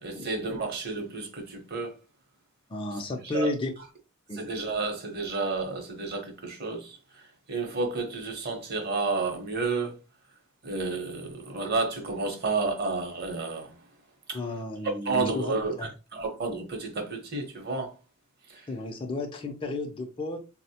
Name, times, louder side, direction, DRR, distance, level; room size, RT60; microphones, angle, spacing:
voice 1, 0.0-1.9 2.9-3.5 4.3-7.2 7.5-9.9 10.6-13.8 14.3-14.4 14.8-15.8 16.1-17.9 18.5-18.7, right 3 dB, 50° right, 0.8 m, -31 dB
voice 2, 2.7-3.7 4.3-4.4 14.3-15.9 18.7-20.4, left 2 dB, 25° left, 0.4 m, -32 dB
4.1 x 2.1 x 2.7 m
head